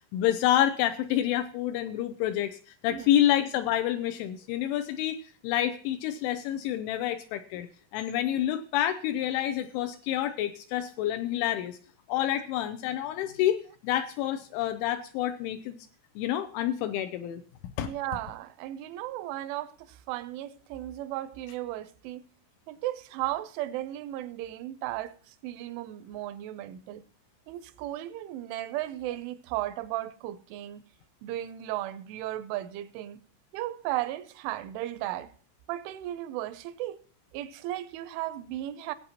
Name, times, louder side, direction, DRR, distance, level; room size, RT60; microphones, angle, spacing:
voice 1, 0.1-2.6 2.8-7.7 7.9-11.8 12.1-15.8 16.2-17.4 17.8-17.9, left 12 dB, 80° left, 2.9 m, -28 dB
voice 2, 17.8-22.2 22.7-27.0 27.5-30.8 31.2-33.2 33.5-35.3 35.7-37.0 37.3-38.9, right 14 dB, 80° right, 3.0 m, -35 dB
19.0 x 8.2 x 2.9 m
omnidirectional pair, 5.7 m